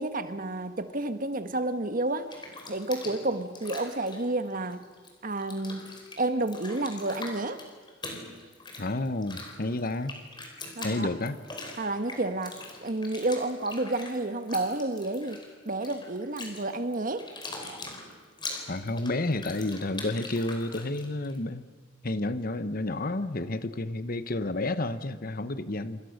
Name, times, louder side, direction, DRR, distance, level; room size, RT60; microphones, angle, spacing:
voice 1, 0.0-2.3 2.7-4.8 5.2-7.6 10.8-11.1 11.8-15.4 15.6-17.3, right 2 dB, 50° right, 9 dB, 1.5 m, -30 dB
Bathtub (filling or washing), 2.1-5.1 5.4-21.4, left 3 dB, 25° left, 4.9 m, -43 dB
voice 2, 8.8-10.1 10.8-11.4 18.7-21.7 22.0-26.0, left 2 dB, 50° left, 12 dB, 1.1 m, -30 dB
28.0 x 26.0 x 6.6 m, 1.4 s
head